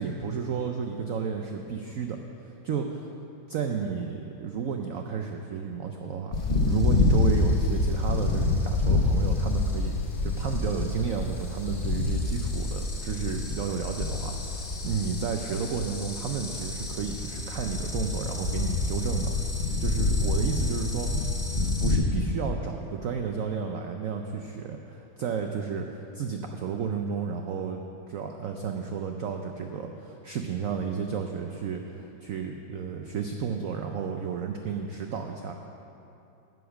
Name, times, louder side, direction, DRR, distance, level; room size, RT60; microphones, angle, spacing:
voice 1, 0.0-2.2 2.6-3.1 3.5-6.4 6.6-10.0 10.2-19.4 19.8-27.8 28.1-35.5, right 6 dB, 80° right, 4 dB, 0.7 m, -32 dB
sound 1, 6.3-22.0, left 3 dB, 35° left, 1.1 m, -27 dB
10.0 x 8.0 x 6.3 m, 2.8 s
omnidirectional pair, 2.1 m